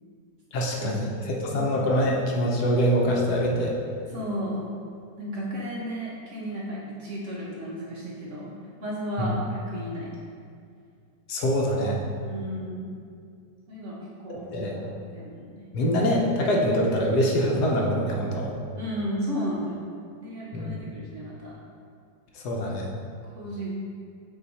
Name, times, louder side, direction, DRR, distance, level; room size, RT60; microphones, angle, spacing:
voice 1, 0.5-1.1 1.4-3.7 9.2-9.3 11.3-12.0 14.5-14.7 15.7-18.5 20.5-20.8 22.3-22.9, equal, 70° left, -1 dB, 1.2 m, -24 dB
voice 2, 4.1-4.6 5.2-8.5 8.8-10.1 12.2-12.9 13.7-15.7 18.8-19.9 20.2-21.6 23.3-23.8, equal, 50° right, -5 dB, 1.0 m, -34 dB
8.2 x 3.0 x 4.1 m, 2.3 s
omnidirectional pair, 1.9 m